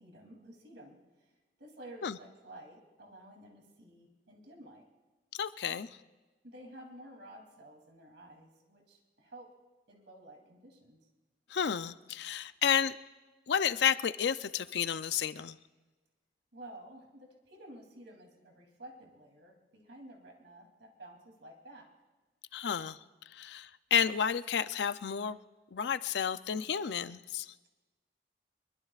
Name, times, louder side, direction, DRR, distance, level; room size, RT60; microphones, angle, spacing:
voice 1, 0.0-4.9 5.7-5.8 6.4-9.5 9.9-11.0 16.5-21.9, right 1 dB, 85° right, 1 dB, 3.0 m, -52 dB
voice 2, 5.4-5.9 11.5-13.0 13.5-15.6 22.5-23.0 23.3-25.4 25.7-27.5, left 8 dB, 75° left, 13 dB, 0.5 m, -31 dB
24.0 x 22.5 x 2.4 m, 1.2 s
head